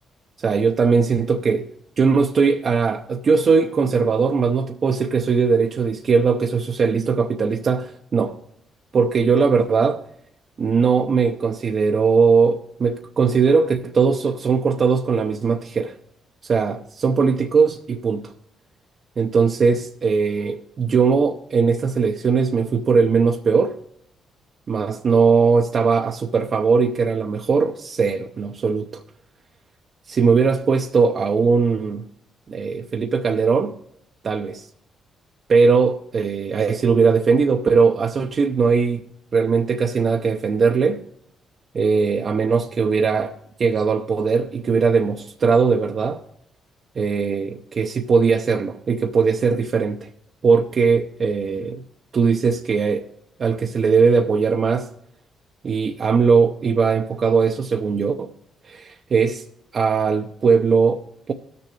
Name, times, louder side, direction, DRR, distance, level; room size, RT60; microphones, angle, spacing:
voice 1, 0.4-1.7 2.0-8.4 8.9-10.0 10.6-16.0 16.4-18.3 19.2-23.8 24.7-29.0 30.1-32.0 32.5-33.8 34.2-34.7 35.5-39.0 39.3-41.0 41.7-43.3 43.6-46.2 47.0-50.1 50.4-51.8 52.1-53.1 53.4-54.9 55.6-58.3 58.6-59.4 59.7-61.3, right 5 dB, 45° right, 0.6 m, -19 dB
17.0 x 6.8 x 3.2 m
cardioid pair, 90°, 0 cm